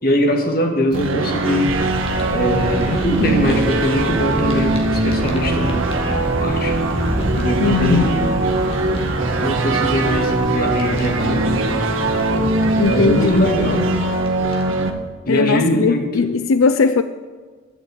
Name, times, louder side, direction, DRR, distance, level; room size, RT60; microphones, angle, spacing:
voice 1, 0.0-1.8 2.3-6.8 7.4-8.3 9.4-11.7 12.9-13.9 15.3-16.1, equal, 45° left, 3 dB, 2.0 m, -21 dB
sound 1, 0.9-14.9, right 2 dB, 80° right, 1.8 m, -21 dB
Fire, 1.5-14.9, equal, 30° left, 2.1 m, -30 dB
sound 2, 1.7-9.3, equal, 5° left, 0.4 m, -31 dB
voice 2, 7.6-8.2 12.8-13.5 15.3-17.0, left 4 dB, 85° left, 12 dB, 0.5 m, -18 dB
12.0 x 8.1 x 8.7 m, 1.5 s
head